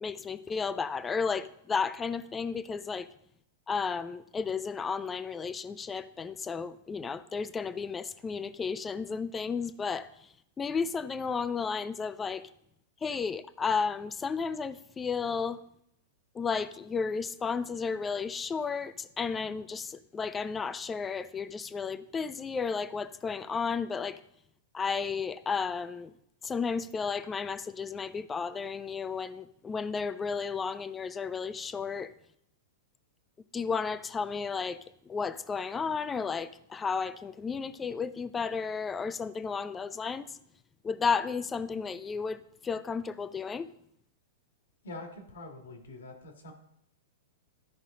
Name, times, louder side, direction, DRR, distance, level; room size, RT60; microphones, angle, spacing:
voice 1, 0.0-3.1 3.7-12.5 13.0-15.6 16.3-24.2 24.7-26.1 26.4-32.1 33.5-40.4 40.8-43.7, left 5 dB, 15° left, 14 dB, 0.4 m, -33 dB
voice 2, 44.8-46.5, left 2 dB, 80° left, 3 dB, 1.9 m, -44 dB
13.0 x 5.3 x 3.7 m, 0.76 s
hypercardioid pair, 125°, 0 cm